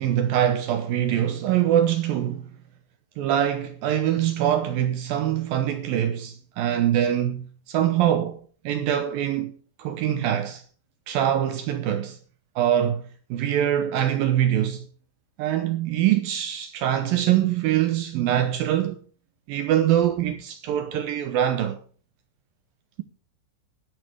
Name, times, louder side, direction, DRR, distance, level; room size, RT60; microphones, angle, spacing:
voice 1, 0.0-2.5 3.2-10.6 11.1-12.2 12.6-14.9 15.4-19.0 19.5-21.8, right 11 dB, 75° right, 2.1 m, -24 dB
19.0 x 8.1 x 3.5 m
omnidirectional pair, 5.1 m